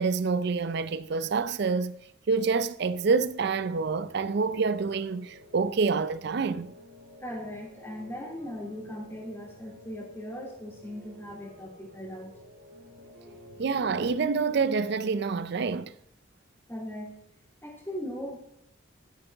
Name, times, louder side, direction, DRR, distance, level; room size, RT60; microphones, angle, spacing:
voice 1, 0.0-2.0 2.3-6.7 13.6-15.9, right 4 dB, 55° right, 0.4 m, -27 dB
sound 1, 2.9-15.4, left 1 dB, 80° right, 2.8 m, -52 dB
voice 2, 7.2-12.3 13.2-13.4 16.7-17.2 17.6-18.4, equal, 10° left, 2.6 m, -39 dB
12.5 x 7.6 x 3.5 m
head